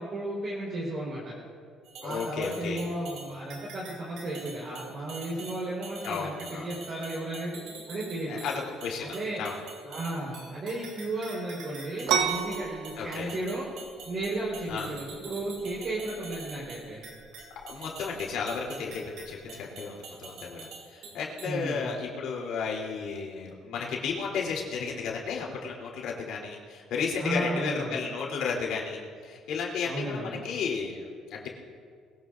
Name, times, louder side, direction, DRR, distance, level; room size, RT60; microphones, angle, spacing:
voice 1, 0.0-1.4 2.0-7.6 7.9-8.4 9.0-9.4 9.8-13.7 14.0-17.1 21.5-21.9 27.2-28.0 29.8-30.4, right 1 dB, 40° right, -6 dB, 4.6 m, -34 dB
sound 1, 1.8-21.5, right 4 dB, 70° right, 4.0 m, -46 dB
voice 2, 2.0-2.8 6.0-6.6 8.3-9.5 13.0-13.3 14.7-14.9 17.6-31.0 31.3-31.5, left 5 dB, 70° left, -3 dB, 3.4 m, -33 dB
sound 2, 12.1-19.5, right 7 dB, 90° right, 1.4 m, -34 dB
22.0 x 16.5 x 2.6 m, 2.1 s
cardioid pair, 115°, 0 cm